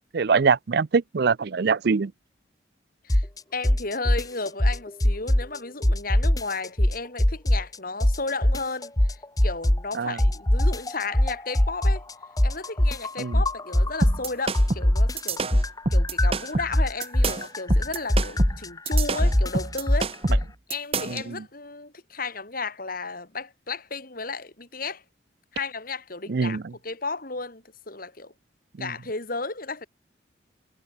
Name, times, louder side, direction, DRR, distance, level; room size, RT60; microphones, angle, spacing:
voice 1, 0.1-2.1 10.0-10.2 13.2-13.4 26.3-26.6 28.8-28.9, right 5 dB, 55° right, 0.5 m, -23 dB
sound 1, 3.1-3.4 3.6-5.6 5.8-7.8 8.0-9.9 10.2-14.3 14.5-20.5, left 1 dB, 20° left, 1.1 m, -21 dB
voice 2, 3.5-12.0 12.4-25.0 25.5-28.3 28.8-29.9, left 3 dB, 50° left, 3.2 m, -34 dB
sound 2, 14.0-21.3, right 3 dB, 30° right, 1.0 m, -29 dB
head